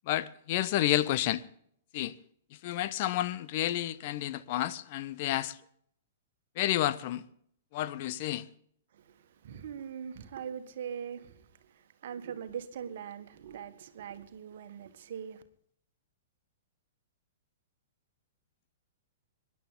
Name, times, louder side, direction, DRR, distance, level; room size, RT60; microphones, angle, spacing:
voice 1, 0.1-1.4 1.9-2.1 2.6-5.5 6.6-7.2 7.7-8.4, left 13 dB, 40° left, 0.8 m, -30 dB
voice 2, 8.9-15.4, right 8 dB, 50° right, 1.5 m, -42 dB
25.0 x 11.0 x 3.8 m
figure-of-eight pair, 110°, 0 cm